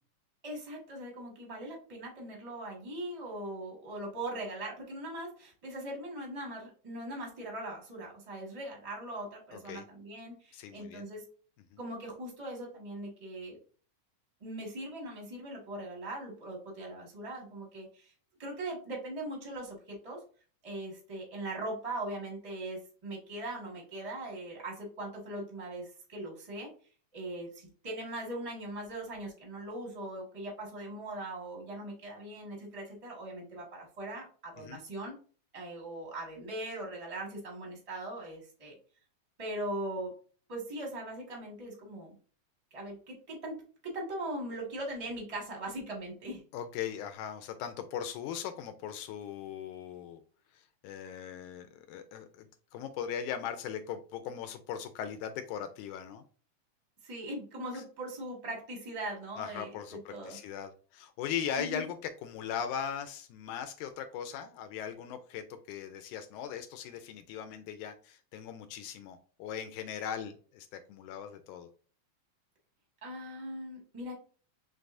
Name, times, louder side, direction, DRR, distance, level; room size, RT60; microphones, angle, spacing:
voice 1, 0.4-11.2 11.8-13.6 14.4-18.1 18.4-20.2 20.6-26.7 27.1-35.1 35.5-38.8 39.4-40.1 40.5-42.1 42.7-46.4 57.0-60.4 61.6-61.9 73.0-74.1, right 1 dB, 30° right, -2 dB, 0.6 m, -40 dB
voice 2, 9.5-9.8 10.5-11.0 11.7-11.8 34.6-34.8 46.5-50.2 50.5-56.2 57.7-57.8 59.4-62.0 62.2-71.7, left 8 dB, 80° left, 8 dB, 1.9 m, -39 dB
5.2 x 3.3 x 2.5 m, 0.40 s
omnidirectional pair, 3.6 m